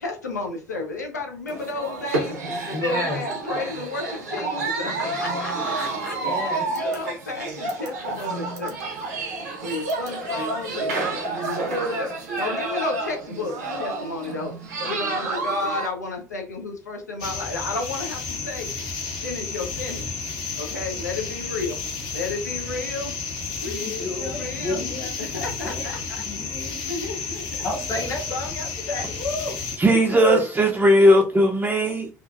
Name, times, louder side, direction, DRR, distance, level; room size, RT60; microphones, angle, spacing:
voice 1, 0.0-2.4 2.7-6.2 6.7-8.9 9.6-11.0 11.4-12.1 12.4-14.5 14.8-18.7 19.2-20.0 20.6-21.8 22.1-24.8 25.2-26.3 26.9-27.6 29.9-30.2, left 3 dB, 90° left, 2 dB, 0.4 m, -32 dB
sound 1, 1.5-15.9, right 3 dB, 75° right, 0.7 m, -29 dB
voice 2, 2.7-3.2 4.9-5.0 6.2-6.6 23.7-25.1 25.6-25.9 26.2-26.9 27.6-29.6, left 2 dB, 35° left, -1 dB, 0.7 m, -31 dB
sound 2, 17.2-29.8, left 4 dB, 55° left, 0.9 m, -32 dB
voice 3, 29.8-32.1, equal, 20° right, 1 dB, 0.4 m, -17 dB
2.4 x 2.3 x 2.4 m, 0.35 s
figure-of-eight pair, 55°, 9 cm